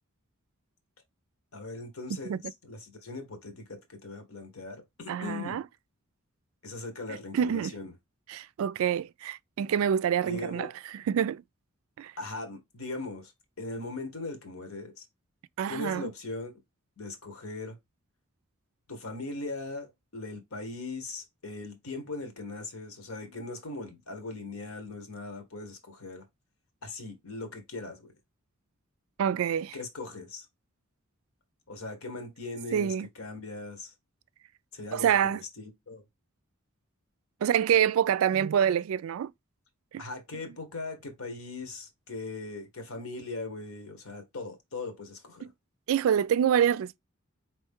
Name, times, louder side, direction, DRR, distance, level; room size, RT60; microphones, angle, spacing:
voice 1, 1.5-5.6 6.6-7.9 10.2-10.7 12.2-13.3 13.6-15.0 15.7-16.6 17.0-17.8 18.9-26.2 26.8-28.1 29.7-30.5 31.7-33.9 34.7-36.0 40.0-45.5, left 3 dB, 85° left, 1.4 m, -39 dB
voice 2, 5.1-5.6 7.3-7.7 8.3-11.4 12.0-12.1 15.6-16.1 29.2-29.8 32.7-33.1 34.9-35.4 37.4-39.3 39.9-40.0 45.4-45.5 45.9-47.0, right 9 dB, 75° right, 0.3 m, -26 dB
4.5 x 3.1 x 3.6 m
head